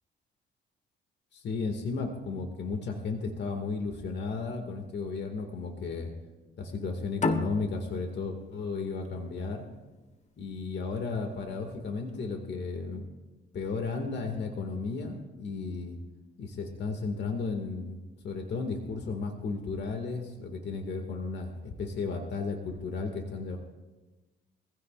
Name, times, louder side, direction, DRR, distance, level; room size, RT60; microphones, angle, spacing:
voice 1, 1.3-6.1 6.6-9.7 10.4-13.0 13.5-16.0 16.4-18.0 18.2-23.6, left 4 dB, 60° left, 3 dB, 2.2 m, -34 dB
sound 1, 7.2-10.4, left 3 dB, 35° left, 1.5 m, -33 dB
23.0 x 16.0 x 2.6 m, 1.2 s
cardioid pair, 90°, 20 cm